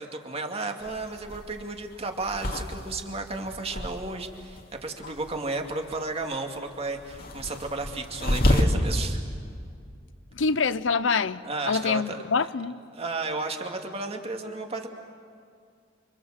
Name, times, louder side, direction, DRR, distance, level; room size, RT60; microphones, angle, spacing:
voice 1, 0.0-9.2 11.4-12.5 12.9-14.9, right 3 dB, 35° right, 2.3 m, -33 dB
sound 1, 0.8-4.6 4.9-8.6, left 1 dB, 55° left, 2.3 m, -30 dB
voice 2, 10.3-12.8, left 5 dB, 90° left, 0.7 m, -26 dB
29.5 x 25.0 x 7.5 m
head